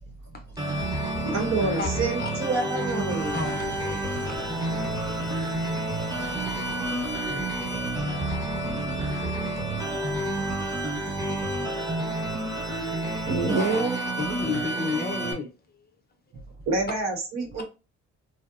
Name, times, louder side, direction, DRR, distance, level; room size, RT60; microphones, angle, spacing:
sound 1, 0.6-15.3, right 1 dB, 15° right, 0.8 m, -29 dB
voice 1, 1.2-3.4 13.2-14.0 16.7-17.6, right 3 dB, 65° right, 0.9 m, -27 dB
sound 2, 3.1-9.4, left 6 dB, 80° left, 0.5 m, -41 dB
voice 2, 3.3-3.6 4.2-5.1 5.4-5.6 7.3-7.5 13.5-13.8 14.2-15.9 16.3-16.4, left 4 dB, 30° left, 0.6 m, -33 dB
voice 3, 6.4-6.9 7.2-8.0 8.4-9.7 10.0-13.3 16.3-16.4, right 2 dB, 40° right, 0.5 m, -47 dB
2.8 x 2.0 x 2.3 m
cardioid pair, 90°, 30 cm